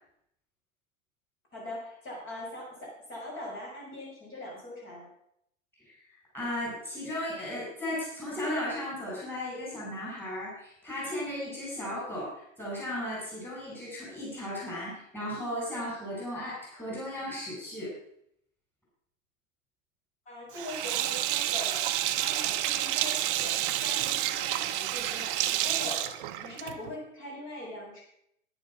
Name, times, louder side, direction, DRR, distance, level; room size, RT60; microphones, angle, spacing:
voice 1, 1.5-5.1 20.3-21.8 22.2-28.0, left 1 dB, 30° left, -3 dB, 5.8 m, -41 dB
voice 2, 6.1-17.9, left 1 dB, 5° left, -5 dB, 5.7 m, -35 dB
Sink (filling or washing), 20.5-26.9, right 13 dB, 40° right, 1.0 m, -29 dB
10.5 x 10.0 x 6.0 m, 0.72 s
hypercardioid pair, 130°, 39 cm